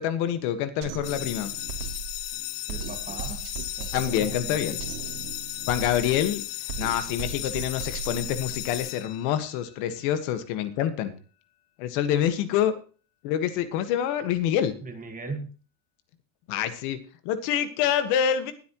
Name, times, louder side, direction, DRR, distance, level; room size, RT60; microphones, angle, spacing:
voice 1, 0.0-1.5 3.9-4.8 5.7-6.4 6.8-11.1 11.8-12.7 13.2-14.8 16.5-17.0 17.3-18.5, left 10 dB, 70° left, 10 dB, 1.7 m, -26 dB
Drum kit, 0.8-8.8, right 7 dB, 80° right, 2.9 m, -38 dB
sound 1, 1.0-9.7, left 18 dB, 85° left, 1.0 m, -36 dB
voice 2, 2.7-3.4 3.8-4.7 14.8-15.5, right 3 dB, 20° right, 6 dB, 1.7 m, -38 dB
20.5 x 8.6 x 3.1 m, 0.37 s
cardioid pair, 160°, 45 cm